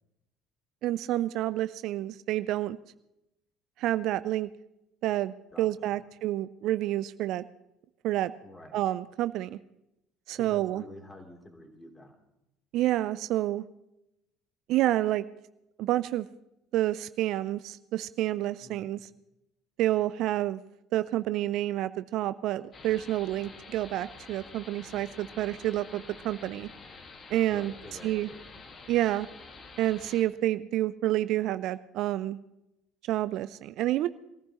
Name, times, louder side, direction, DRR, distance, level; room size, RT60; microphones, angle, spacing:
voice 1, 0.8-2.8 3.8-4.5 5.0-7.4 8.0-8.3 8.7-9.6 10.3-10.8 12.7-13.6 14.7-15.2 15.8-16.3 16.7-19.0 19.8-20.6 20.9-26.7 27.3-27.7 28.0-28.3 28.9-29.3 29.8-32.4 33.1-34.1, right 14 dB, 60° right, 15 dB, 0.4 m, -29 dB
voice 2, 5.5-6.0 8.4-8.8 10.4-12.2 18.6-18.9 23.3-23.6 27.2-28.5, left 1 dB, 15° left, 2 dB, 3.2 m, -49 dB
sound 1, 22.7-30.2, left 4 dB, 40° left, 1.8 m, -48 dB
23.0 x 14.5 x 3.0 m, 0.88 s
hypercardioid pair, 60°, 0 cm